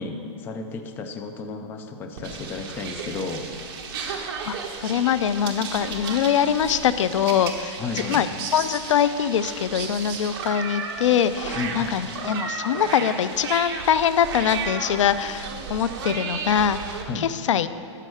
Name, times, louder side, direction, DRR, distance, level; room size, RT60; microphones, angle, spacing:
voice 1, 0.0-3.5 7.8-8.2 11.5-12.2 17.0-17.3, left 4 dB, 15° left, 6 dB, 0.4 m, -33 dB
sound 1, 2.2-17.0, right 5 dB, 50° right, 1.4 m, -34 dB
voice 2, 4.8-7.8 8.1-8.3 8.5-17.7, left 8 dB, 85° left, 14 dB, 0.5 m, -23 dB
10.5 x 6.5 x 6.3 m, 2.7 s
hypercardioid pair, 165°, 15 cm